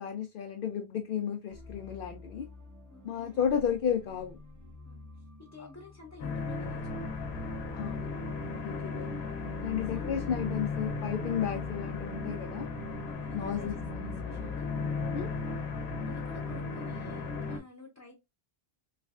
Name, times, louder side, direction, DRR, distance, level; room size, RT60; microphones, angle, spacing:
voice 1, 0.0-2.5 3.0-4.4 7.7-8.4 8.6-9.2 9.6-12.7 13.3-14.5 15.1-15.3, left 8 dB, 65° left, 0.7 m, -33 dB
sound 1, 1.5-15.2, left 2 dB, 20° right, 0.7 m, -51 dB
voice 2, 2.9-3.4 4.8-5.1 5.5-7.6 9.7-10.5 13.0-14.7 16.1-18.1, left 3 dB, 15° left, 0.7 m, -51 dB
sound 2, 6.2-17.6, left 4 dB, 80° left, 1.0 m, -36 dB
3.3 x 3.2 x 2.3 m
omnidirectional pair, 1.1 m